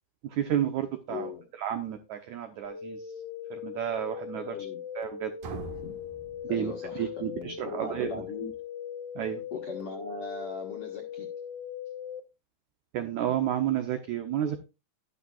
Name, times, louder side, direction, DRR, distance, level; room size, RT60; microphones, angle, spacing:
voice 1, 0.2-1.3 1.6-3.0 3.5-4.6 5.0-5.3 6.5-8.2 9.2-9.4 12.9-14.6, right 10 dB, 80° right, 1.7 m, -31 dB
voice 2, 1.1-1.5 4.5-4.8 5.8-5.9 6.5-8.5 9.5-11.3, left 4 dB, 55° left, 1.7 m, -39 dB
sound 1, 2.6-12.2, left 8 dB, 85° left, 1.4 m, -40 dB
sound 2, 5.4-7.3, right 5 dB, 60° right, 2.3 m, -43 dB
11.0 x 11.0 x 2.4 m
omnidirectional pair, 4.5 m